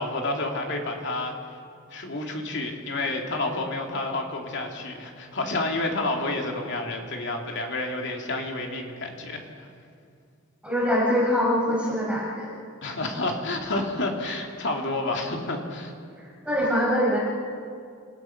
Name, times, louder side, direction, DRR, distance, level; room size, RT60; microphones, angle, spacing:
voice 1, 0.0-1.3 1.9-9.7 12.8-15.9, left 2 dB, 55° left, 2 dB, 2.7 m, -29 dB
voice 2, 10.6-12.5 16.2-17.2, equal, 5° right, -6 dB, 6.5 m, -24 dB
29.0 x 17.0 x 5.9 m, 2.3 s
head